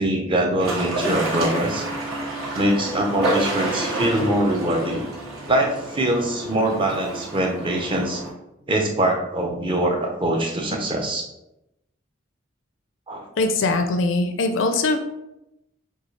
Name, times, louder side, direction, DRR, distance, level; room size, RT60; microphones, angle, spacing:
voice 1, 0.0-1.9 2.6-5.0 5.5-8.2 8.7-11.3 13.1-13.2, right 1 dB, 25° right, 1 dB, 0.6 m, -23 dB
sound 1, 0.6-8.3, right 1 dB, 70° right, 1.6 m, -29 dB
voice 2, 13.4-15.0, left 3 dB, 60° left, 5 dB, 0.4 m, -21 dB
6.8 x 2.3 x 3.2 m, 0.88 s
head